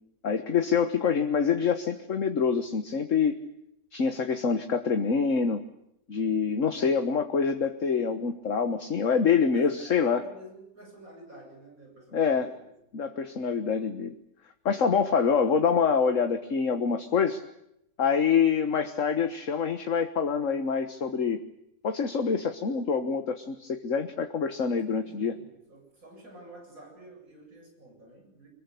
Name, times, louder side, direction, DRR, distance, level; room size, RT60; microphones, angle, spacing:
voice 1, 0.2-3.4 3.9-5.6 6.1-10.2 12.1-12.5 12.9-14.1 14.7-17.4 18.0-21.4 21.8-25.3, left 6 dB, 55° left, 7 dB, 1.8 m, -26 dB
voice 2, 9.3-12.7 24.9-28.5, right 1 dB, 65° right, 2 dB, 8.6 m, -50 dB
26.0 x 21.5 x 8.4 m, 0.79 s
omnidirectional pair, 1.6 m